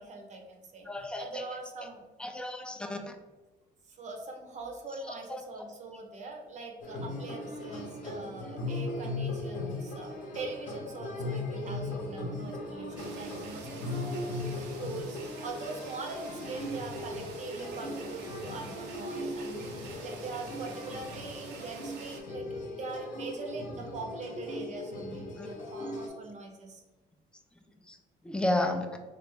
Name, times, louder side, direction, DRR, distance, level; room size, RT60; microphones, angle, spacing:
voice 1, 0.0-2.0 3.9-22.5 22.7-26.8, right 3 dB, 45° right, 2 dB, 0.6 m, -42 dB
voice 2, 0.9-1.5 1.8-1.9 2.2-3.2 5.0-5.4 25.4-25.5 27.9-28.0 28.2-29.0, left 1 dB, 5° left, 5 dB, 0.4 m, -32 dB
sound 1, 6.8-26.1, left 2 dB, 50° left, 0.8 m, -38 dB
sound 2, 13.0-22.2, right 4 dB, 80° right, 0.6 m, -47 dB
3.3 x 2.4 x 3.4 m, 1.2 s
cardioid pair, 110°, 17 cm